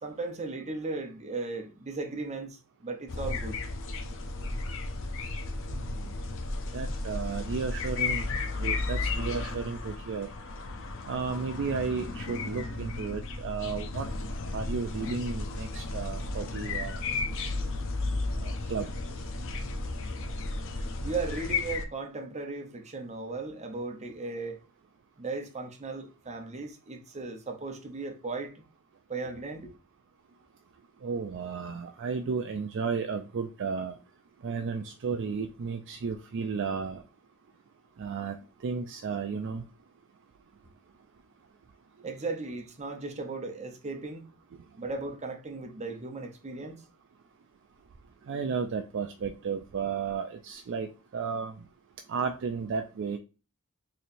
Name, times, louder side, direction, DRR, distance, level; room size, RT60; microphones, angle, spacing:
voice 1, 0.0-3.6 21.0-24.6 25.2-28.5 29.1-29.7 42.0-44.2 44.8-46.8, right 3 dB, 30° right, 0.8 m, -36 dB
sound 1, 3.1-21.8, left 3 dB, 60° left, 0.6 m, -34 dB
voice 2, 6.7-8.3 8.6-10.3 11.1-14.1 14.5-17.0 18.4-18.9 31.0-33.9 34.4-37.0 38.0-38.4 38.6-39.6 48.3-51.6 52.1-53.2, right 5 dB, 55° right, 0.4 m, -33 dB
4.2 x 3.2 x 2.6 m
head